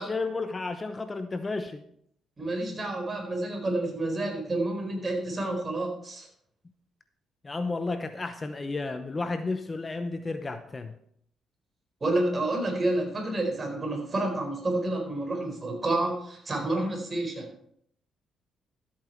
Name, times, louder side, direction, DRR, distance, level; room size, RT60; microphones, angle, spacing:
voice 1, 0.0-1.8 7.4-10.9, left 3 dB, 25° left, 8 dB, 0.9 m, -32 dB
voice 2, 2.4-6.3 12.0-17.5, right 2 dB, 30° right, 2 dB, 4.4 m, -29 dB
13.0 x 8.6 x 4.6 m, 0.68 s
cardioid pair, 90°, 0 cm